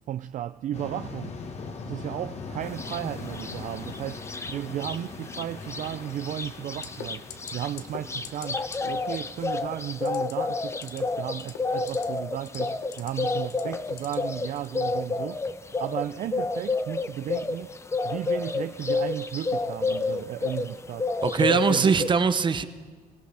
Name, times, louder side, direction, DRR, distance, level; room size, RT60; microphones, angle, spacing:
voice 1, 0.1-1.4 1.8-15.4 15.8-17.7 18.0-22.1, right 11 dB, 50° right, 0.4 m, -34 dB
sound 1, 0.7-9.8, left 4 dB, 40° left, 1.5 m, -41 dB
sound 2, 2.8-3.0 3.4-5.0 5.3-5.4 5.7-20.7 21.0-22.1, left 3 dB, 15° left, 0.5 m, -29 dB
sound 3, 6.8-7.0 7.3-7.5 7.8-8.0 8.2-8.5 8.7-8.8 10.0-10.3 10.7-11.0 11.4-12.0 12.4-13.1 13.5-14.1 14.6-14.7, left 10 dB, 85° left, 1.0 m, -40 dB
voice 2, 21.2-22.7, right 5 dB, 30° right, 0.8 m, -21 dB
24.0 x 17.0 x 3.4 m
cardioid pair, 110°, 17 cm